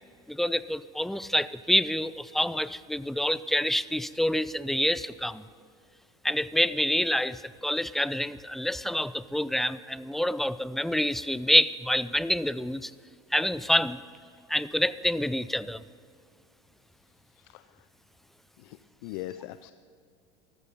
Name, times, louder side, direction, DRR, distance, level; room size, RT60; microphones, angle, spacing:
voice 1, 0.3-5.5 6.2-12.9 13.3-14.0 14.5-15.8, left 1 dB, ahead, 16 dB, 0.4 m, -27 dB
voice 2, 17.3-17.9 18.6-19.7, left 15 dB, 65° left, 12 dB, 0.5 m, -41 dB
14.5 x 13.5 x 5.5 m, 2.3 s
hypercardioid pair, 100°, 15 cm